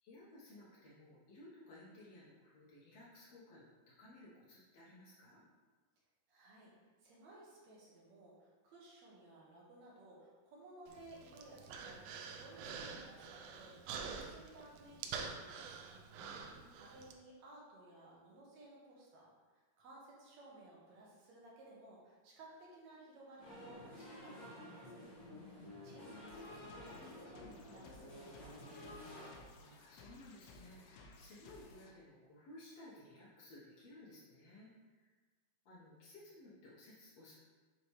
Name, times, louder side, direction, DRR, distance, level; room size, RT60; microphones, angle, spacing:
voice 1, 0.0-5.5 16.2-16.8 25.3-25.9 29.6-35.1 35.6-37.3, left 1 dB, 70° left, -7 dB, 1.6 m, -58 dB
voice 2, 6.3-6.7 7.0-16.0 16.3-25.0 25.4-29.3, right 2 dB, 65° right, -5 dB, 1.9 m, -58 dB
Human voice, 10.9-17.1, right 5 dB, 80° right, 2.2 m, -47 dB
sound 1, 23.4-29.3, left 1 dB, 40° left, 1.6 m, -52 dB
sound 2, 26.3-31.9, left 2 dB, 85° left, 2.7 m, -59 dB
8.6 x 4.3 x 3.2 m, 1.4 s
omnidirectional pair, 4.4 m